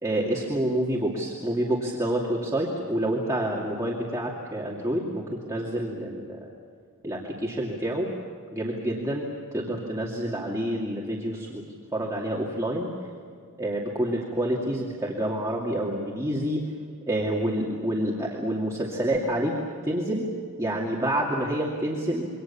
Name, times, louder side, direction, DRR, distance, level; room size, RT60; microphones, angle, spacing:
voice 1, 0.0-6.5 7.0-8.1 8.5-11.6 11.9-12.9 13.6-16.6 17.1-19.5 19.8-20.3 20.6-22.2, right 1 dB, 15° right, -4 dB, 2.5 m, -28 dB
27.5 x 24.5 x 7.2 m, 2.2 s
head